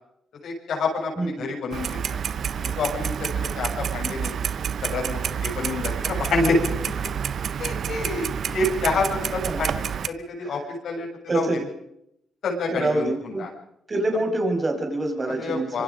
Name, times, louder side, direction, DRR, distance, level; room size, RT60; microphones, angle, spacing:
voice 1, 0.4-2.2 2.6-4.3 4.8-7.1 7.6-11.1 11.3-11.7 12.4-13.5 15.2-15.8, left 3 dB, 65° left, -1 dB, 7.7 m, -28 dB
Clock, 1.7-10.1, right 7 dB, 55° right, 0.8 m, -28 dB
voice 2, 11.3-11.6 12.7-13.5 13.9-15.8, right 2 dB, 25° right, 3 dB, 6.0 m, -25 dB
25.5 x 24.5 x 5.3 m, 0.78 s
cardioid pair, 90°, 0 cm